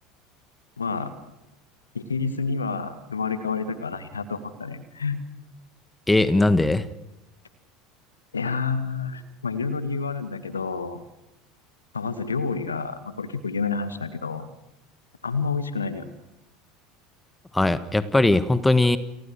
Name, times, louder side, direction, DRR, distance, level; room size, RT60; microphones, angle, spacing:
voice 1, 0.8-1.1 1.9-5.2 8.3-11.0 11.9-14.5 15.2-16.1, left 5 dB, 80° left, 14 dB, 1.9 m, -29 dB
voice 2, 6.1-6.9 17.5-19.0, left 2 dB, 10° left, 15 dB, 1.4 m, -19 dB
29.0 x 19.5 x 6.3 m, 0.92 s
figure-of-eight pair, 70°, 0 cm